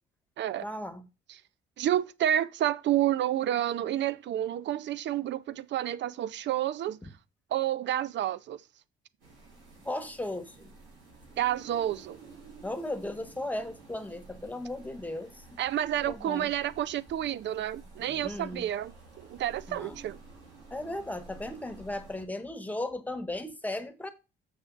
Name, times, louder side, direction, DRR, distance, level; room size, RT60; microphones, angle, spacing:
voice 1, 0.6-1.0 7.0-7.1 9.8-10.7 12.6-15.4 16.1-16.5 18.0-18.7 19.7-20.0 20.7-24.1, left 1 dB, 10° left, 1.2 m, -36 dB
voice 2, 1.8-7.0 7.5-8.6 11.4-12.2 15.6-18.9 19.2-20.2, right 12 dB, 65° right, 0.5 m, -29 dB
sound 1, 9.2-22.2, right 3 dB, 90° right, 4.7 m, -52 dB
6.9 x 6.2 x 3.9 m
cardioid pair, 90°, 20 cm